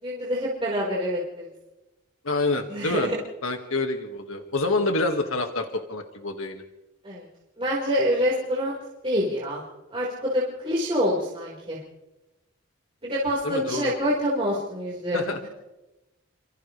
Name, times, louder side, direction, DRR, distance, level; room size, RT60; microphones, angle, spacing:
voice 1, 0.0-1.5 2.7-3.2 7.0-7.2 7.6-8.7 9.0-9.6 9.9-11.8 13.0-15.5, equal, 25° right, -6 dB, 4.7 m, -26 dB
voice 2, 2.2-3.1 3.4-6.6 13.4-13.9 15.1-15.4, left 2 dB, 85° left, 4 dB, 1.9 m, -27 dB
30.0 x 26.0 x 3.3 m, 1.0 s
head